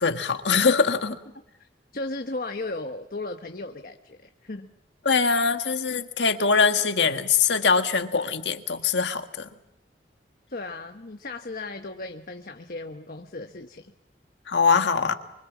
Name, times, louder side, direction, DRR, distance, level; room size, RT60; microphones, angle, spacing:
voice 1, 0.0-1.2 5.0-9.5 14.5-15.1, left 5 dB, 80° left, 7 dB, 1.6 m, -22 dB
voice 2, 1.6-4.7 10.5-13.9, left 2 dB, 55° left, 5 dB, 1.2 m, -36 dB
25.0 x 24.0 x 7.4 m, 0.84 s
head